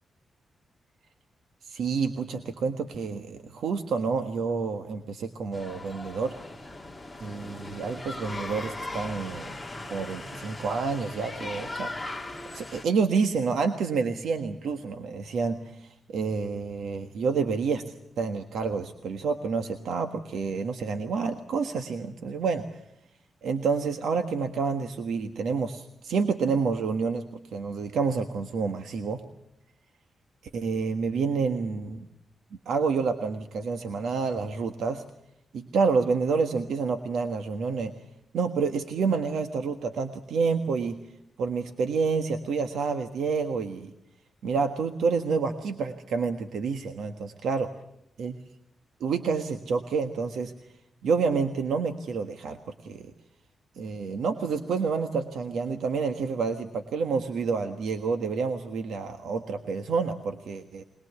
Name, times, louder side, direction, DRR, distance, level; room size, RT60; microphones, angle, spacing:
voice 1, 1.6-6.3 7.2-9.5 9.9-11.9 12.5-17.8 18.2-22.8 23.4-27.2 27.5-29.2 30.5-32.0 32.6-35.0 35.5-37.9 38.3-41.0 41.4-43.9 44.4-47.7 48.2-48.3 49.0-50.5 51.0-52.6 52.8-53.1 53.7-60.8, right 5 dB, 85° right, 6 dB, 1.5 m, -28 dB
sound 1, 5.5-12.8, left 2 dB, 5° left, 1.7 m, -38 dB
21.5 x 21.5 x 8.2 m, 0.80 s
wide cardioid pair, 155°, 0 cm